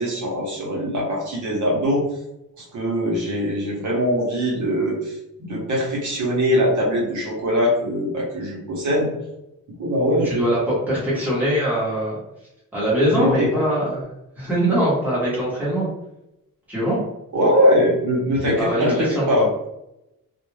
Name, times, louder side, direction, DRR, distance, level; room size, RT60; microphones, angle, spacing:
voice 1, 0.0-2.0 2.6-9.1 9.8-10.5 13.1-13.5 17.3-19.5, equal, 60° right, -4 dB, 0.9 m, -22 dB
voice 2, 10.2-12.2 12.7-14.0 14.4-15.9 16.7-17.0 18.4-19.5, equal, 5° right, -8 dB, 1.0 m, -22 dB
2.3 x 2.3 x 3.1 m, 0.88 s
wide cardioid pair, 175°, 34 cm